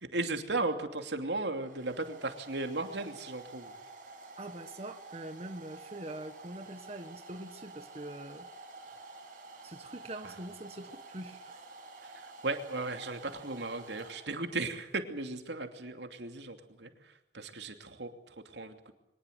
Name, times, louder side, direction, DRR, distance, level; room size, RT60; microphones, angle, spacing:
voice 1, 0.0-3.7 10.2-10.3 12.0-18.9, right 2 dB, 80° right, 6 dB, 2.8 m, -36 dB
Domestic sounds home sounds, 1.0-14.7, right 3 dB, 50° right, 6.2 m, -50 dB
voice 2, 4.4-8.5 9.6-11.6, right 1 dB, 35° right, 7 dB, 1.5 m, -44 dB
23.5 x 20.5 x 8.2 m, 0.86 s
head